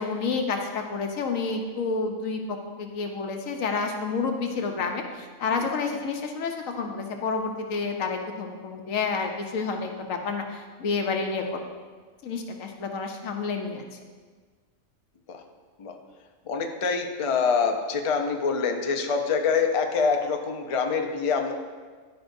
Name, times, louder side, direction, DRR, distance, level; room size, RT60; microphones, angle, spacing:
voice 1, 0.0-11.6 12.2-13.8, left 4 dB, 80° left, 3 dB, 1.1 m, -29 dB
voice 2, 16.5-21.5, left 5 dB, 55° left, 4 dB, 0.3 m, -25 dB
11.0 x 5.1 x 2.6 m, 1.5 s
omnidirectional pair, 1.4 m